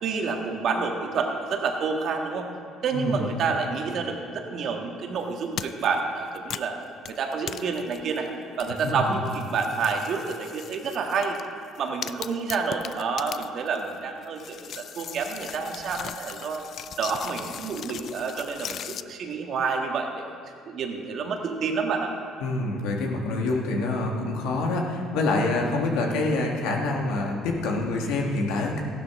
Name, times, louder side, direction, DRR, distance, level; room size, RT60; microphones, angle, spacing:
voice 1, 0.0-2.5 2.8-6.8 7.1-8.3 8.6-11.4 11.8-16.6 17.0-20.2 20.6-22.1 25.9-26.2, right 5 dB, 60° right, 2 dB, 1.6 m, -29 dB
voice 2, 2.9-3.3 8.8-9.1 22.4-28.8, left 2 dB, 85° left, 1 dB, 1.6 m, -26 dB
sound 1, 5.6-6.0 6.4-8.3 8.6-11.5 11.8-13.9 14.2-19.0, left 9 dB, 55° left, 0.3 m, -39 dB
14.5 x 11.5 x 3.7 m, 2.4 s
supercardioid pair, 90°, 0 cm